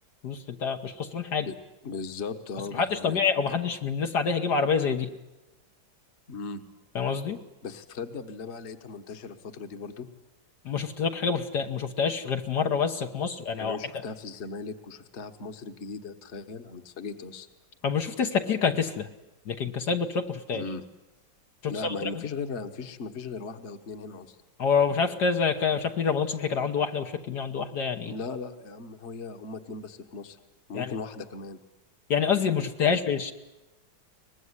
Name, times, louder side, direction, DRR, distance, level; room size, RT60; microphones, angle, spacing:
voice 1, 0.2-1.5 2.7-5.1 7.0-7.4 10.7-13.8 17.8-19.1 19.5-20.6 21.6-22.0 24.6-28.1 30.7-30.9 32.1-33.3, left 6 dB, 65° left, 4 dB, 1.8 m, -27 dB
voice 2, 1.8-3.2 3.5-3.6 6.3-6.6 7.6-10.1 13.6-17.5 20.5-20.8 21.7-24.4 28.0-30.4 30.7-31.6 32.8-33.0, left 4 dB, 40° left, 8 dB, 1.6 m, -38 dB
24.0 x 20.5 x 9.8 m, 1.0 s
omnidirectional pair, 2.0 m